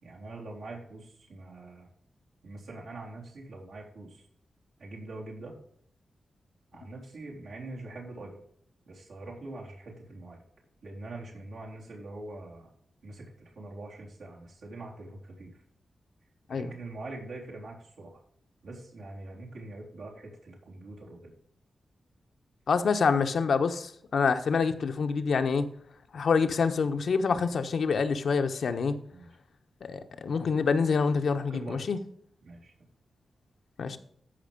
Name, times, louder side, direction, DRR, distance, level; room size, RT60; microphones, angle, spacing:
voice 1, 0.0-1.9 2.4-4.3 4.8-5.5 6.7-8.4 8.9-10.4 10.8-12.7 13.0-15.6 16.5-18.2 18.6-21.3 29.1-29.3 31.4-31.8 32.4-32.9, right 2 dB, 90° right, 3.6 m, -43 dB
voice 2, 22.7-25.7 26.1-28.9 29.8-32.0 33.8-34.0, left 5 dB, 70° left, 1.1 m, -26 dB
14.0 x 5.4 x 5.3 m
wide cardioid pair, 100°, 0 cm